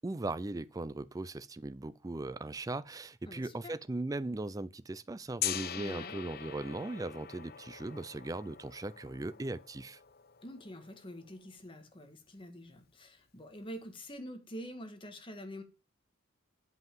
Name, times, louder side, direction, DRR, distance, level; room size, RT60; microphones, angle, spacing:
voice 1, 0.0-10.0, right 2 dB, 15° right, 0.4 m, -38 dB
voice 2, 3.3-3.7 5.8-6.2 10.4-15.6, equal, 25° left, 1.6 m, -46 dB
Gong, 5.4-11.3, left 10 dB, 50° left, 0.9 m, -42 dB
8.1 x 5.7 x 7.3 m
head